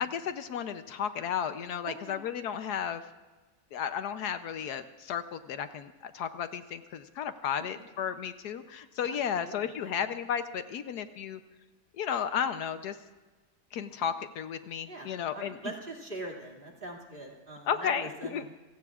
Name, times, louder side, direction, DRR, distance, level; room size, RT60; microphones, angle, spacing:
voice 1, 0.0-3.0 3.7-11.4 12.0-13.0 13.7-15.5 17.7-18.4, left 8 dB, 75° left, 10 dB, 1.2 m, -33 dB
voice 2, 1.8-2.2 7.7-7.8 9.0-10.0 14.9-18.5, right 2 dB, 30° right, 0 dB, 2.6 m, -43 dB
28.5 x 17.0 x 2.4 m, 1.2 s
omnidirectional pair, 1.8 m